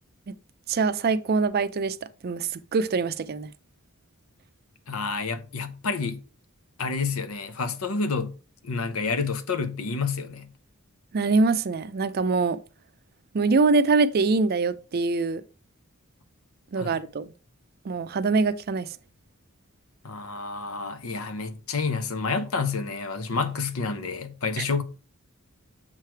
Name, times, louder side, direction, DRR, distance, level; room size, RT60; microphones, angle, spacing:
voice 1, 0.7-2.0 2.2-3.5 11.1-12.6 13.3-15.4 16.7-17.3 17.8-18.9, right 4 dB, 45° right, 0.4 m, -24 dB
voice 2, 4.9-6.2 6.8-8.3 8.6-10.5 16.8-17.0 20.0-24.8, left 4 dB, 75° left, 0.8 m, -29 dB
7.4 x 3.3 x 4.5 m
head